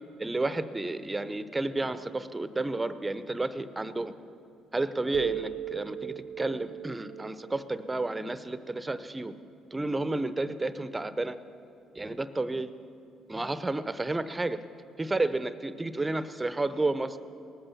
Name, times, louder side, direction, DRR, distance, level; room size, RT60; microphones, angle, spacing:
voice 1, 0.2-4.1 4.7-9.3 9.7-11.4 11.9-12.7 13.3-14.6 15.0-17.2, right 2 dB, 20° right, 13 dB, 0.7 m, -31 dB
sound 1, 5.1-8.7, right 12 dB, 80° right, 0.6 m, -38 dB
19.0 x 8.8 x 7.1 m, 2.6 s
supercardioid pair, 60°, 0 cm